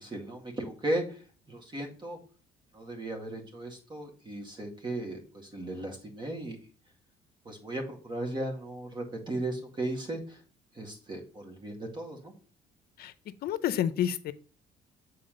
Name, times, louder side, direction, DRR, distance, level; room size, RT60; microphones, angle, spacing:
voice 1, 0.0-2.2 2.7-6.6 7.4-10.4 10.7-12.3, right 1 dB, 30° right, 1 dB, 2.1 m, -36 dB
voice 2, 13.4-14.3, left 10 dB, 65° left, 13 dB, 0.7 m, -29 dB
7.4 x 4.2 x 3.8 m, 0.39 s
cardioid pair, 110°, 17 cm